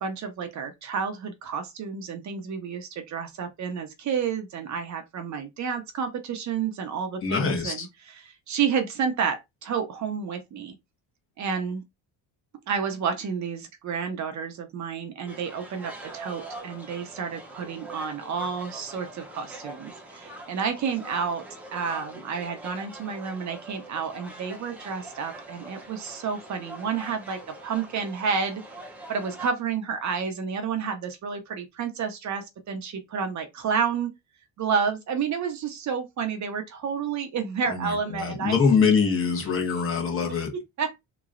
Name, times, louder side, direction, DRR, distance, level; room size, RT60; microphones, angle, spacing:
voice 1, 0.0-10.8 11.4-11.8 12.7-21.5 21.7-28.6 29.1-34.1 34.6-38.9 40.3-41.1, right 6 dB, 45° right, 0.8 m, -30 dB
voice 2, 7.2-7.9 37.6-40.5, left 5 dB, 35° left, 1.0 m, -24 dB
sound 1, 15.2-29.5, right 2 dB, 5° right, 0.7 m, -43 dB
3.7 x 3.0 x 2.5 m
cardioid pair, 145°, 38 cm